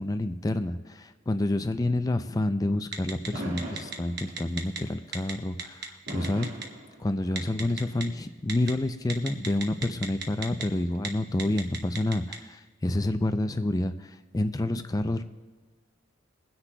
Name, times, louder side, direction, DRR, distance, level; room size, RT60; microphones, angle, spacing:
voice 1, 0.0-6.5 7.0-15.2, left 1 dB, 15° left, 10 dB, 0.4 m, -28 dB
Telephone, 2.9-3.3 3.6-4.8 5.1-5.3 5.6-6.6 7.4-8.0 8.5-8.7 9.1-10.6 10.9-11.1 11.4-12.4, right 6 dB, 50° right, 1.0 m, -34 dB
Fireworks, 3.3-4.6 6.1-7.6, right 1 dB, 70° right, 1.8 m, -38 dB
22.0 x 9.8 x 2.3 m, 1.5 s
head